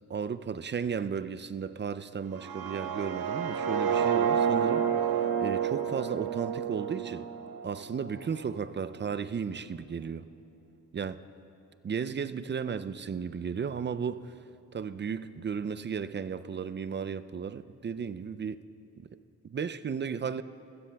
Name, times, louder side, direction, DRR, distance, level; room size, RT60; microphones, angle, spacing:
voice 1, 0.1-4.9 5.4-7.3 7.6-10.2 10.9-11.2 11.8-14.3 14.7-18.6 19.0-19.1 19.4-20.4, right 6 dB, 30° right, 14 dB, 0.4 m, -34 dB
sound 1, 2.3-8.3, right 8 dB, 60° right, 0.8 m, -29 dB
20.0 x 15.5 x 2.3 m, 2.6 s
supercardioid pair, 45°, 40 cm